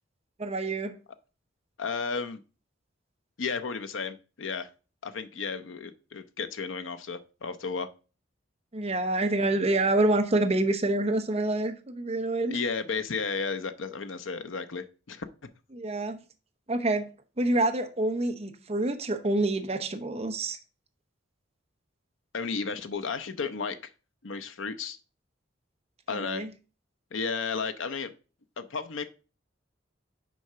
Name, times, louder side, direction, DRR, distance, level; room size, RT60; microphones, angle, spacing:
voice 1, 0.4-0.9 8.7-12.6 15.7-16.2 16.7-17.1 17.4-20.6 26.1-26.5, right 2 dB, 35° right, 0.8 m, -27 dB
voice 2, 1.8-2.4 3.4-4.7 5.0-7.9 12.5-15.2 22.3-23.8 24.2-25.0 26.1-26.5 27.1-28.1 28.6-29.0, left 5 dB, 80° left, 0.7 m, -33 dB
6.3 x 3.7 x 5.6 m
head